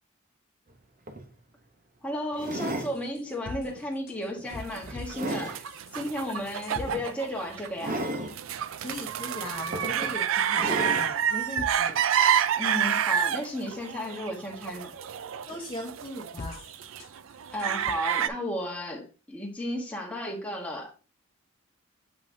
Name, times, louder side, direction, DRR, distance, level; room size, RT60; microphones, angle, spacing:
sound 1, 0.7-0.8 1.1-1.3 2.3-2.9 3.6-3.8 4.4-5.6 6.9-7.1 7.8-8.3 9.2-9.3 9.7-10.1 10.6-11.1 11.9-12.0, right 1 dB, 40° right, 0.8 m, -33 dB
voice 1, 2.0-5.6 5.9-8.0 12.6-14.9 17.5-20.9, left 1 dB, 5° left, -1 dB, 1.3 m, -34 dB
sound 2, 2.9-6.9 11.6-11.7 16.4-17.3 17.6-17.9, left 3 dB, 45° left, 0.4 m, -42 dB
sound 3, 4.7-18.3, right 9 dB, 70° right, 0.4 m, -29 dB
voice 2, 8.8-12.0 15.5-16.6, left 1 dB, 25° left, -2 dB, 1.0 m, -38 dB
7.2 x 5.5 x 2.7 m, 0.35 s
head